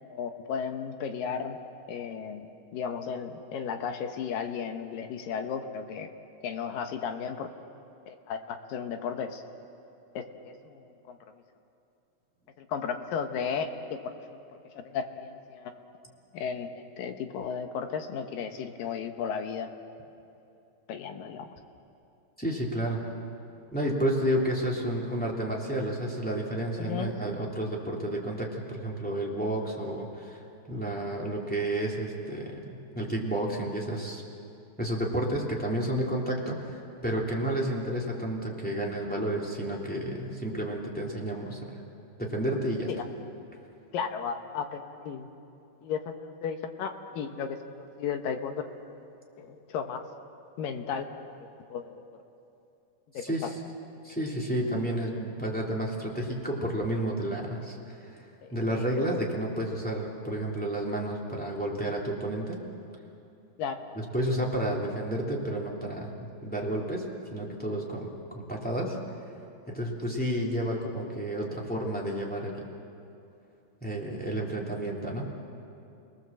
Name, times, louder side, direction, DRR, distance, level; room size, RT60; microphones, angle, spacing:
voice 1, 0.1-1.6 1.9-6.1 6.4-7.5 8.1-9.4 10.1-11.2 12.6-14.4 14.8-15.9 16.3-19.7 20.9-21.5 26.8-27.1 42.9-43.0 43.9-45.3 45.8-47.7 48.0-48.7 49.1-50.0 50.6-51.3 51.7-52.0 53.1-53.5 58.4-58.5 63.6-63.8, left 6 dB, 70° left, 6 dB, 2.7 m, -34 dB
voice 2, 22.4-23.0 23.7-30.4 30.7-34.2 34.8-41.7 42.2-42.9 53.2-53.5 54.0-58.2 58.5-62.6 63.9-69.0 69.7-72.7 73.8-75.3, right 1 dB, 5° left, -3 dB, 2.6 m, -31 dB
30.0 x 19.5 x 7.6 m, 2.8 s
omnidirectional pair, 4.5 m